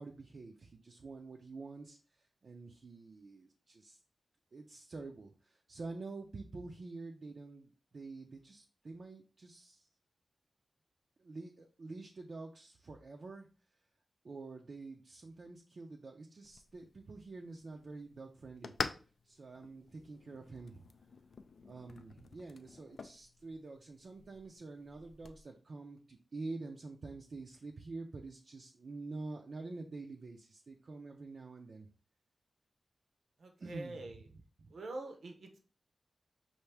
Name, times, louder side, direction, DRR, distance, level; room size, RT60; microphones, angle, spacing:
voice 1, 0.0-4.0 4.5-9.9 11.2-13.5 14.2-18.8 19.2-20.8 21.6-31.9 33.6-34.1 34.6-34.7, right 3 dB, 50° right, 0 dB, 0.5 m, -47 dB
sound 1, 16.4-25.4, left 4 dB, 65° left, 0.4 m, -47 dB
voice 2, 33.4-34.2 34.7-35.6, right 2 dB, 80° right, 4 dB, 0.9 m, -45 dB
5.7 x 2.6 x 3.3 m, 0.36 s
wide cardioid pair, 155°, 0 cm